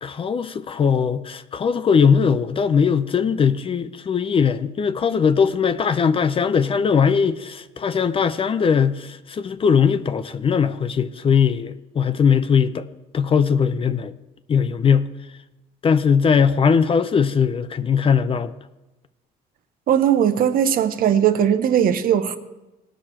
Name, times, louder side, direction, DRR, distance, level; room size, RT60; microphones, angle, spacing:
voice 1, 0.0-12.8 13.1-14.1 14.5-15.1 15.8-18.5, left 6 dB, 35° left, 0.5 m, -19 dB
voice 2, 19.9-22.4, right 9 dB, 60° right, 0.9 m, -18 dB
18.5 x 6.3 x 4.4 m
cardioid pair, 110°, 17 cm